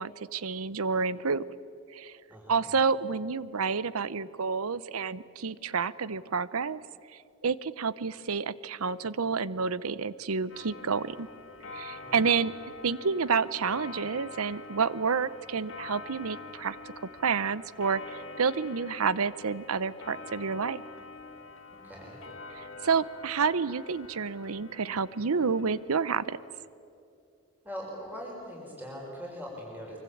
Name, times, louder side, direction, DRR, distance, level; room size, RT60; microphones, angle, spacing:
voice 1, 0.0-1.4 1.9-2.1 2.5-6.8 7.4-11.3 11.7-12.5 12.8-16.8 17.2-20.8 22.5-26.4, right 5 dB, 85° right, 18 dB, 0.7 m, -29 dB
voice 2, 2.3-2.7 12.0-12.3 21.7-22.2 27.6-30.0, equal, 10° right, -3 dB, 5.4 m, -41 dB
Clock, 10.5-26.6, left 3 dB, 60° left, 2.3 m, -46 dB
24.0 x 24.0 x 8.6 m, 2.5 s
head